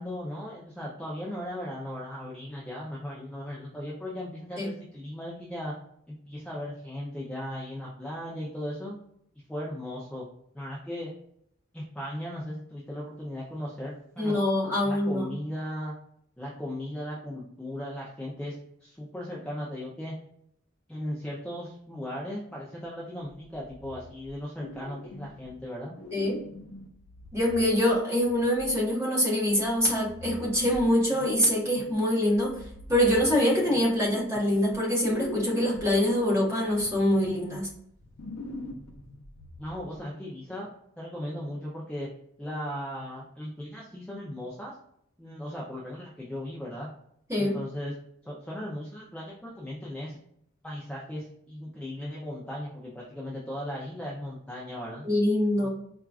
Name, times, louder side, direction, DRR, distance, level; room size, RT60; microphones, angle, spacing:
voice 1, 0.0-5.7 6.1-9.0 9.5-10.3 10.5-11.1 11.7-14.4 14.8-15.9 16.4-20.1 20.9-26.0 39.6-40.7 41.0-42.1 42.4-44.7 45.2-46.9 47.4-47.9 48.2-50.2 50.6-55.1 55.6-55.7, left 1 dB, 5° left, -4 dB, 0.5 m, -37 dB
voice 2, 14.2-15.2 26.1-26.4 27.3-32.6 32.9-37.7 47.3-47.6 55.0-55.7, left 1 dB, 15° right, -6 dB, 1.4 m, -24 dB
sound 1, 23.6-24.3 24.6-25.6 25.9-28.8 29.6-32.0 32.3-34.7 35.0-40.0, left 1 dB, 85° left, 0.6 m, -44 dB
4.4 x 2.4 x 2.4 m, 0.70 s
head